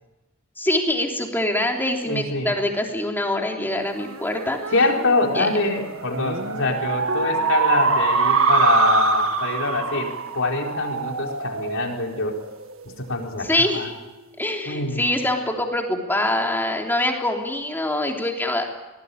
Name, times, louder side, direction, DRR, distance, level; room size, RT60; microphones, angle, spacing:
voice 1, 0.6-4.6 5.3-5.5 13.4-14.0 14.4-18.7, left 1 dB, 10° left, 1 dB, 3.3 m, -24 dB
voice 2, 2.1-2.5 4.7-12.4 12.8-13.9 14.6-15.1, left 2 dB, 65° left, 1 dB, 4.5 m, -24 dB
sound 1, 4.0-12.8, right 4 dB, 75° right, 1.9 m, -24 dB
24.0 x 19.0 x 8.7 m, 1.1 s
head